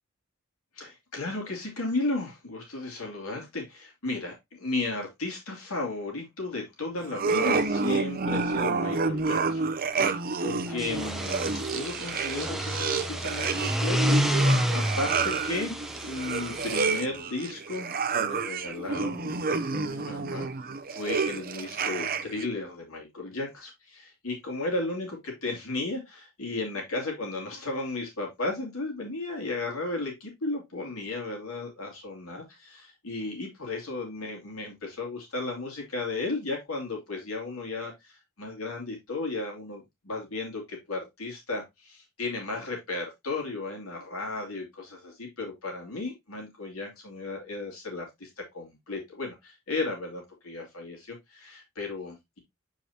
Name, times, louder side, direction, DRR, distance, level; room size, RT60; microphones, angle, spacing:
voice 1, 0.7-15.8 16.1-20.5 20.9-52.4, left 2 dB, 80° left, 2.8 m, -35 dB
sound 1, 7.1-22.5, right 4 dB, 45° right, 0.7 m, -29 dB
sound 2, 10.7-17.0, equal, ahead, 0.8 m, -29 dB
7.9 x 4.9 x 2.8 m
head